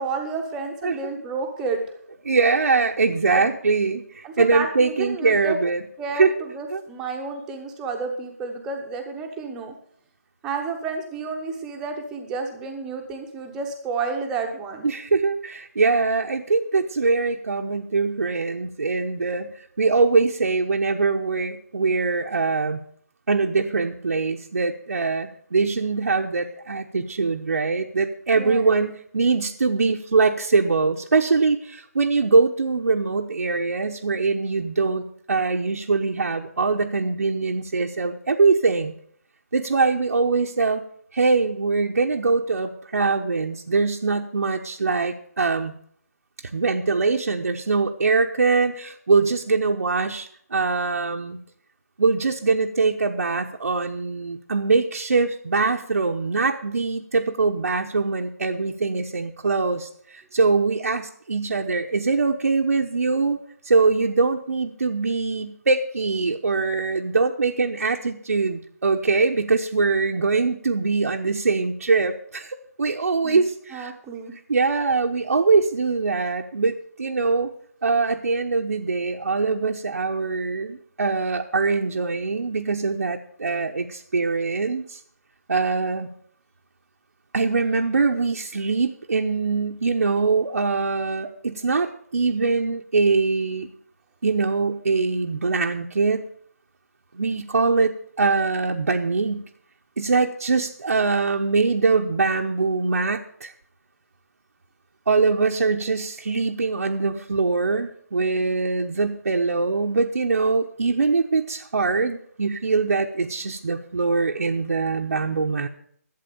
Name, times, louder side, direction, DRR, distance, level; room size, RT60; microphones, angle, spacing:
voice 1, 0.0-2.0 3.3-3.5 4.2-5.6 6.0-9.7 10.4-14.9 28.3-28.7 73.2-73.4 73.7-74.3, right 4 dB, 5° right, 3 dB, 0.9 m, -31 dB
voice 2, 2.2-5.8 6.2-6.3 6.7-6.8 14.8-22.8 23.3-38.9 39.5-40.8 41.1-45.7 46.5-51.4 52.0-63.4 63.6-73.9 74.5-77.5 77.8-85.0 85.5-86.1 87.3-93.7 94.2-96.3 97.1-99.4 100.0-103.5 105.1-115.7, right 4 dB, 70° right, 1 dB, 0.9 m, -22 dB
11.5 x 8.2 x 6.8 m, 0.63 s
hypercardioid pair, 170°, 9 cm